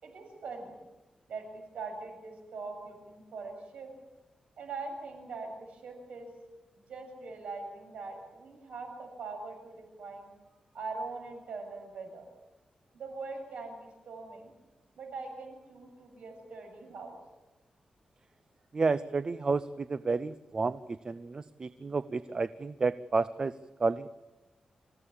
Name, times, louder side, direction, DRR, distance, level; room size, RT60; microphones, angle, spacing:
voice 1, 0.0-0.7 1.3-3.9 4.6-6.3 6.8-10.3 10.7-12.3 12.9-14.5 15.0-17.1, right 3 dB, 90° right, 3 dB, 7.4 m, -42 dB
voice 2, 18.7-20.8 21.0-23.5 23.8-24.1, right 4 dB, 40° right, 14 dB, 0.7 m, -30 dB
27.5 x 16.0 x 8.7 m, 1.1 s
wide cardioid pair, 115°, 2 cm